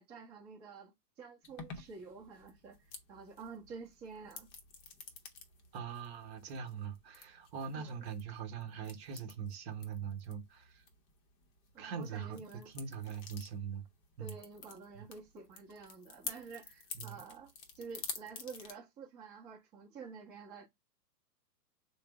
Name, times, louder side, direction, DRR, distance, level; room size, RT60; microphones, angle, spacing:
voice 1, 0.0-4.5 7.7-8.0 11.7-12.7 14.2-20.7, right 5 dB, 20° right, 0.7 m, -50 dB
sound 1, 1.4-18.7, left 4 dB, 25° left, 0.6 m, -50 dB
voice 2, 5.7-10.8 11.8-12.4 12.7-13.8 14.2-14.4 16.9-17.2, right 7 dB, 40° right, 1.0 m, -42 dB
3.1 x 2.0 x 3.4 m
hypercardioid pair, 130°, 49 cm